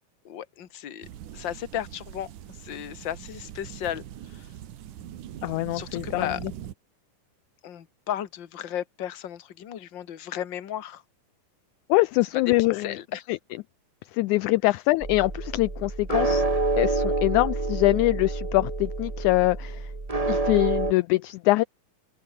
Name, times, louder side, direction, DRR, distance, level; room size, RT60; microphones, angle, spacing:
voice 1, 0.3-1.1 1.3-2.3 2.6-4.1 4.3-4.5 5.7-6.4 7.6-11.0 12.8-13.3 14.6-14.8, left 10 dB, 45° left, 1.8 m, -34 dB
sound 1, 1.0-6.7, right 11 dB, 70° right, 3.0 m, -42 dB
voice 2, 5.4-6.3 11.9-13.0 13.3-13.4 14.1-16.5 16.8-19.9 20.3-21.6, left 20 dB, 80° left, 1.8 m, -23 dB
sound 2, 15.0-20.9, right 2 dB, 20° right, 0.9 m, -27 dB
open air
omnidirectional pair, 3.9 m